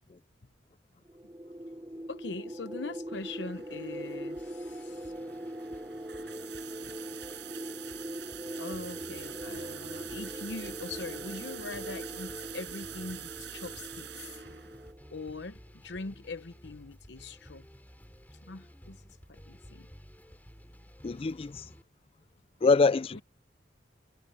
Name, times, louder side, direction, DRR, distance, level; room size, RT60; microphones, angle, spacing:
sound 1, 1.1-15.4, equal, 20° right, 3.1 m, -42 dB
voice 1, 2.1-5.1 8.6-14.4 15.1-17.6 18.4-19.0 19.3-19.9 23.1-23.2, left 3 dB, 70° left, 0.9 m, -42 dB
sound 2, 3.1-14.9, right 10 dB, 65° right, 7.0 m, -46 dB
sound 3, 4.4-21.8, equal, 10° left, 4.8 m, -54 dB
voice 2, 21.0-21.7 22.6-23.2, left 4 dB, 30° left, 0.4 m, -24 dB
head